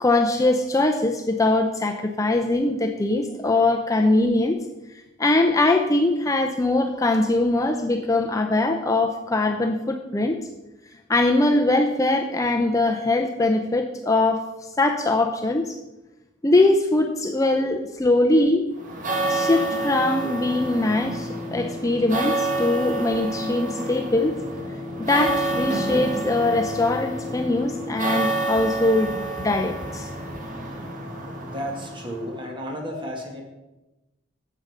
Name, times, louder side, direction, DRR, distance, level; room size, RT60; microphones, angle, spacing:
voice 1, 0.0-4.6 5.2-10.4 11.1-14.4 14.8-15.8 16.4-18.6 19.3-24.3 24.6-24.7 25.0-29.1 29.4-30.1, left 2 dB, 15° left, 3 dB, 0.6 m, -22 dB
sound 1, 18.8-32.4, right 2 dB, 40° right, 1.7 m, -29 dB
voice 2, 31.4-33.4, equal, 25° right, 2 dB, 1.9 m, -33 dB
8.8 x 7.6 x 6.6 m, 1.0 s
head